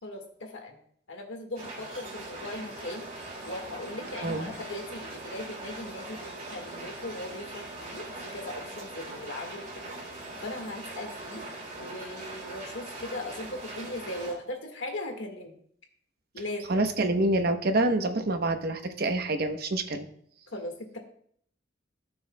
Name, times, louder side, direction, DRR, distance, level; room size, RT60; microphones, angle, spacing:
voice 1, 0.0-0.8 1.1-3.1 3.4-8.1 8.3-9.9 10.4-11.4 11.8-15.5 16.3-16.9 20.5-21.0, left 1 dB, 85° left, 3 dB, 1.6 m, -39 dB
sound 1, 1.6-14.3, right 2 dB, 40° right, 3.0 m, -41 dB
voice 2, 16.7-20.1, right 2 dB, 55° right, 7 dB, 0.9 m, -27 dB
16.0 x 6.2 x 2.2 m, 0.64 s
head